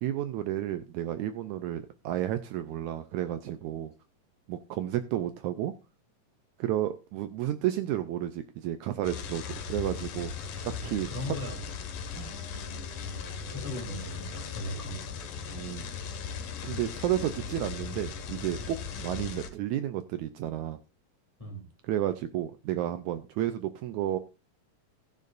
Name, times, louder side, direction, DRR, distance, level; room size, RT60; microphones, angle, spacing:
voice 1, 0.0-3.9 4.5-5.7 6.6-10.3 10.6-11.4 12.1-12.3 15.5-15.8 16.6-20.8 21.9-24.2, right 12 dB, 75° right, 10 dB, 1.9 m, -32 dB
sound 1, 9.0-19.5, left 6 dB, 90° left, 3.1 m, -38 dB
voice 2, 10.8-11.8 13.1-15.2 21.4-21.7, left 1 dB, 10° left, 2 dB, 2.3 m, -39 dB
sound 2, 12.0-19.7, left 2 dB, 5° right, 3.9 m, -52 dB
15.0 x 10.5 x 2.5 m, 0.28 s
omnidirectional pair, 3.7 m